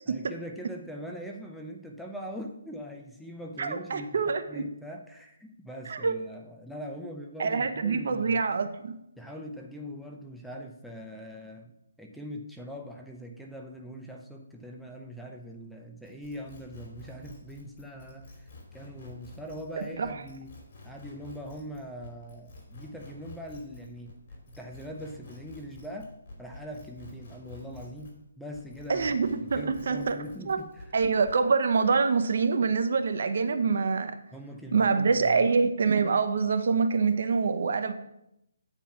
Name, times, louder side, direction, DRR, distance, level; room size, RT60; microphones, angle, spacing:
voice 1, 0.1-8.4 9.2-11.7 12.0-18.5 18.7-20.6 20.8-24.1 24.6-26.1 26.4-29.2 29.6-30.9 34.3-35.5, equal, ahead, 1 dB, 0.7 m, -42 dB
voice 2, 3.6-4.6 5.9-6.1 7.4-9.0 19.8-20.1 28.9-30.2 30.5-30.6 30.9-34.1 34.7-37.9, right 5 dB, 60° right, 9 dB, 0.7 m, -25 dB
sound 1, 16.0-28.2 28.5-31.4, left 2 dB, 40° left, 2.9 m, -48 dB
9.0 x 4.5 x 5.8 m, 0.82 s
hypercardioid pair, 155°, 0 cm